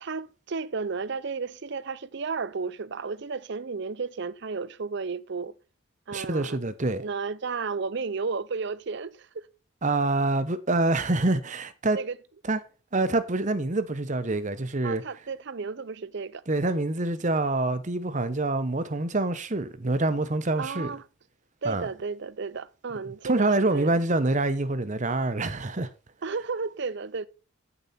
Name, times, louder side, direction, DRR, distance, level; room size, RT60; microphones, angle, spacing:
voice 1, 0.0-5.5 6.1-6.6 7.0-9.5 11.9-12.2 14.8-16.4 20.6-21.0 21.6-24.0 26.2-27.3, right 4 dB, 55° right, 0.6 m, -33 dB
voice 2, 6.1-7.0 9.8-12.0 12.4-12.6 12.9-15.0 16.5-20.9 21.6-21.9 23.2-25.9, right 2 dB, 35° right, 0.9 m, -26 dB
14.5 x 6.9 x 4.2 m
head